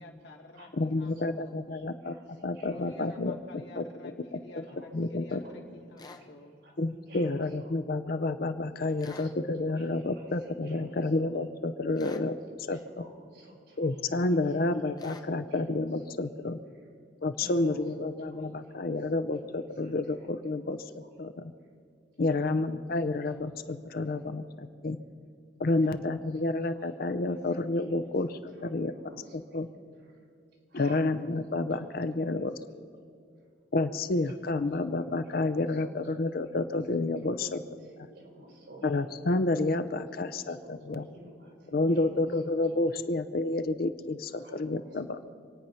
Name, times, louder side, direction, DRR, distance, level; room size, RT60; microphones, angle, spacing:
voice 1, 0.0-1.7 2.7-6.6, left 1 dB, 70° left, 0 dB, 2.4 m, -51 dB
voice 2, 0.8-3.8 4.3-4.6 4.9-5.4 6.8-12.3 12.7-13.0 13.8-16.6 17.2-21.5 22.2-25.0 25.6-28.9 29.3-29.7 30.7-32.5 33.7-37.6 38.8-41.1 41.7-45.2, left 2 dB, 55° left, 10 dB, 0.6 m, -30 dB
voice 3, 1.7-3.2 4.7-4.9 5.4-5.5 6.1-6.3 6.6-6.8 7.1-7.7 8.8-9.4 9.8-10.9 12.7-14.6 15.5-15.6 17.4-18.8 19.8-19.9 21.0-21.1 22.3-22.8 23.3-23.5 23.9-24.0 25.8-26.2 26.7-26.9 27.9-28.0 28.6-29.8 30.7-31.3 31.7-31.9 33.4-33.5 34.5-34.6 34.9-35.0 35.8-35.9 37.8-39.1 40.6-42.3 44.4-45.1, equal, 65° right, -2 dB, 4.7 m, -52 dB
sound 1, 6.0-6.2 9.0-9.3 12.0-12.3 15.0-15.3, left 3 dB, 20° left, 0.8 m, -47 dB
26.5 x 9.2 x 5.6 m, 2.3 s
head